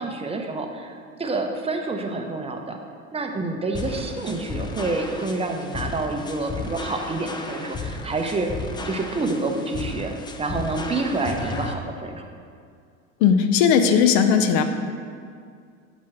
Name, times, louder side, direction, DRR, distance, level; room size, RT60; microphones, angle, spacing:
voice 1, 0.0-2.8 3.1-8.5 8.8-12.3, right 3 dB, 15° right, 3 dB, 0.7 m, -28 dB
sound 1, 3.7-11.7, left 3 dB, 10° left, 0.3 m, -34 dB
voice 2, 13.2-14.6, left 7 dB, 60° left, 7 dB, 0.7 m, -17 dB
8.3 x 3.1 x 5.8 m, 2.2 s
hypercardioid pair, 90°, 41 cm